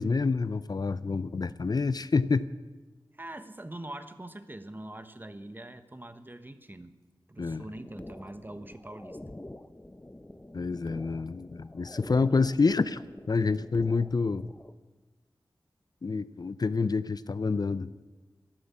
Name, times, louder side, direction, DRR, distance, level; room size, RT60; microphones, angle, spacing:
voice 1, 0.0-2.5 7.4-7.7 10.5-14.5 16.0-17.9, left 4 dB, 55° left, 15 dB, 0.5 m, -28 dB
voice 2, 3.1-7.0 7.3-9.2 12.2-12.5, right 1 dB, 25° right, 10 dB, 1.2 m, -43 dB
sound 1, 7.7-14.7, left 1 dB, 20° left, 0.8 m, -47 dB
14.0 x 11.5 x 8.4 m, 1.2 s
wide cardioid pair, 55°, 8 cm